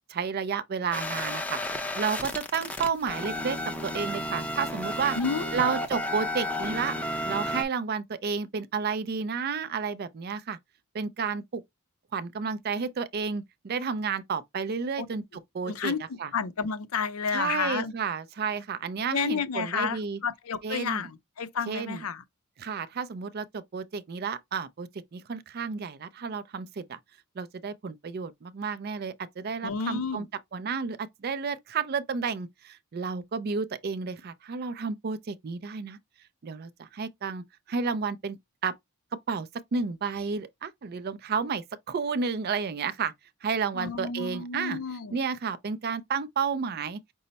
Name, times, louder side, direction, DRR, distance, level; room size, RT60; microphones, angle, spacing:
voice 1, 0.1-5.2 5.5-6.9 7.3-10.6 10.9-11.6 12.1-15.2 15.5-15.9 16.2-16.3 17.3-20.2 20.6-21.1 21.7-22.0 22.6-27.0 27.4-30.2 30.5-36.0 36.4-38.7 39.3-43.1 43.4-44.8 45.1-47.0, right 5 dB, 45° right, 0.4 m, -31 dB
sound 1, 0.9-7.6, left 1 dB, 5° left, 0.5 m, -32 dB
voice 2, 5.1-5.6 15.0-15.1 15.6-18.0 19.1-22.2 29.6-30.3 43.7-45.2, left 6 dB, 75° left, 0.5 m, -31 dB
5.4 x 2.0 x 3.9 m
head